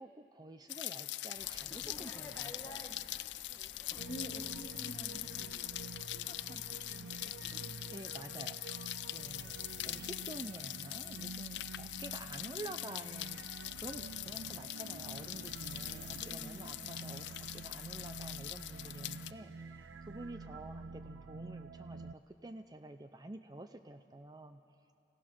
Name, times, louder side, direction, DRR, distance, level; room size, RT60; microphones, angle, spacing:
voice 1, 0.0-2.9 7.9-24.6, right 2 dB, 20° right, 8 dB, 0.5 m, -49 dB
Rain, 0.7-19.3, left 16 dB, 70° left, 0.4 m, -43 dB
sound 1, 1.4-7.6, left 1 dB, 15° left, 1.6 m, -54 dB
voice 2, 3.9-5.7 6.0-8.2 12.1-12.7 16.1-17.6, equal, 35° left, 1 dB, 2.0 m, -51 dB
sound 2, 4.0-22.1, right 4 dB, 90° right, 0.5 m, -49 dB
28.0 x 16.5 x 6.3 m, 2.6 s
head